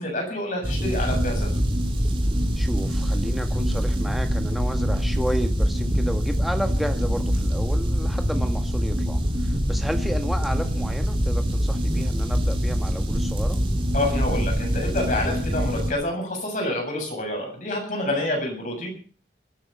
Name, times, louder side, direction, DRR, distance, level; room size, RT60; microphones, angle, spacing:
voice 1, 0.0-1.5 13.9-18.9, left 1 dB, 45° left, 1 dB, 7.3 m, -28 dB
sound 1, 0.6-15.9, equal, 30° right, 3.1 m, -24 dB
voice 2, 2.6-13.6, equal, ahead, 5 dB, 1.8 m, -32 dB
23.5 x 9.8 x 5.6 m, 0.42 s
head